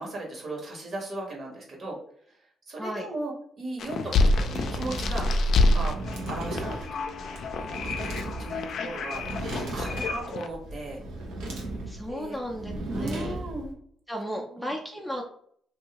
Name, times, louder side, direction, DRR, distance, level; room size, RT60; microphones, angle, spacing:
voice 1, 0.0-2.0 2.7-4.2 4.5-5.3 5.7-6.0 6.3-6.7 8.4-11.0 11.5-11.6 12.0-12.4 12.9-13.7 14.3-14.7, right 2 dB, 50° right, -1 dB, 1.3 m, -36 dB
sound 1, 3.8-10.5, left 2 dB, 65° left, 0.4 m, -27 dB
sound 2, 4.1-13.7, right 1 dB, 90° right, 0.8 m, -35 dB
voice 2, 11.9-13.4 14.1-15.2, equal, ahead, 0 dB, 0.5 m, -35 dB
2.7 x 2.6 x 2.9 m, 0.62 s
cardioid pair, 90°, 0 cm